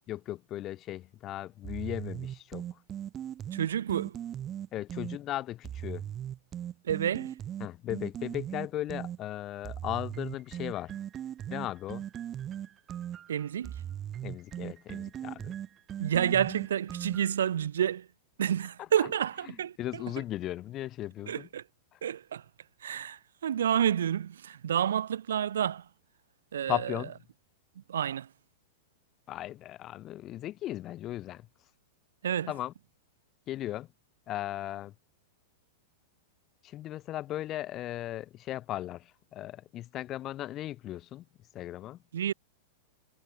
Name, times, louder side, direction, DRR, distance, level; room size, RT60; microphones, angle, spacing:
voice 1, 0.1-2.8 4.7-6.1 7.6-11.0 11.5-12.0 14.2-15.5 19.0-19.1 19.5-21.5 21.9-22.0 26.7-27.1 29.3-31.5 32.5-32.7 33.5-33.9 34.3-34.9 36.6-41.3 41.5-42.0, left 14 dB, 30° left, 2.6 m, -37 dB
sound 1, 1.6-5.2 5.6-9.2 9.6-17.4, right 10 dB, 25° right, 1.5 m, -39 dB
voice 2, 3.5-4.2 6.8-7.3 13.3-13.8 16.0-18.1 18.4-20.0 21.3-21.6 22.0-22.4 22.8-25.9 26.5-26.9 27.9-28.3 32.2-32.5 42.1-42.3, right 9 dB, 85° right, 0.8 m, -29 dB
hypercardioid pair, 130°, 0 cm